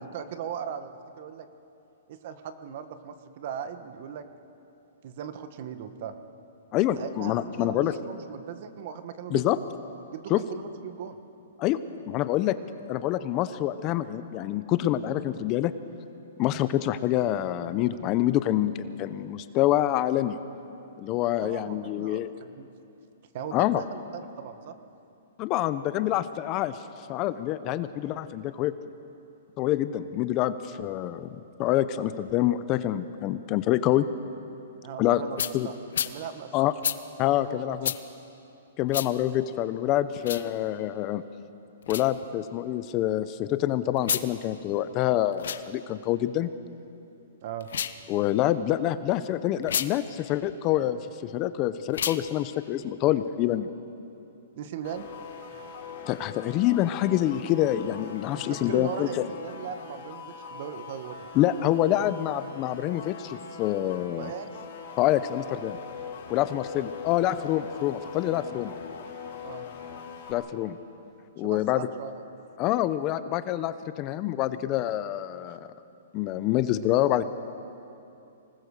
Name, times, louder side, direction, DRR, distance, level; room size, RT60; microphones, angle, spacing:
voice 1, 0.0-1.5 2.1-4.3 5.0-6.1 7.0-9.4 10.1-11.2 21.4-22.7 23.3-24.8 34.8-35.8 36.0-36.5 37.2-37.9 47.4-47.7 54.5-55.1 58.4-61.3 64.2-64.5 69.4-69.7 71.4-72.2 75.5-75.6, right 8 dB, 45° right, 9 dB, 1.4 m, -38 dB
voice 2, 6.7-8.0 9.3-9.6 10.3-10.4 11.6-11.8 12.1-12.6 12.9-15.7 16.4-20.4 21.0-22.3 23.5-23.8 25.4-26.8 27.1-28.7 29.6-34.1 35.0-35.2 35.5-35.7 36.5-36.7 37.2-37.9 38.8-41.2 41.9-46.5 48.1-53.7 56.1-59.3 61.3-64.3 65.0-65.8 66.3-68.7 70.3-70.8 71.4-71.9 72.6-75.6 76.1-77.2, left 13 dB, 30° left, 13 dB, 0.7 m, -26 dB
sound 1, 35.4-35.5 35.9-36.1 36.8-37.0 37.8-38.0 38.9-39.1 40.2-40.5 41.8-42.1 44.0-44.3 45.3-45.6 47.6-48.0 49.6-49.9 51.9-52.2, left 8 dB, 75° left, 1.0 m, -29 dB
sound 2, 54.8-70.3, left 6 dB, 50° left, 4.7 m, -42 dB
25.5 x 19.5 x 6.7 m, 2.7 s
hypercardioid pair, 155°, 0 cm